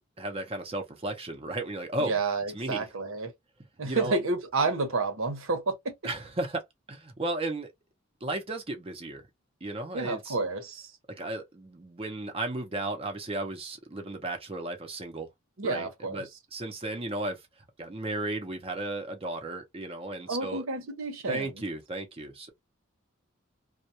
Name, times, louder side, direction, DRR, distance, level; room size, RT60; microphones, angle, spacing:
voice 1, 0.2-2.2 2.5-2.9 3.8-4.1 6.0-6.6 6.9-7.7 8.2-9.2 9.6-10.4 11.2-15.3 15.6-17.4 17.8-20.7 21.3-22.5, right 2 dB, 30° right, 0.6 m, -34 dB
voice 2, 2.0-3.3 3.8-5.9 9.9-10.9 15.6-16.2 20.3-21.5, right 3 dB, 75° right, 0.9 m, -30 dB
2.2 x 2.2 x 2.6 m
head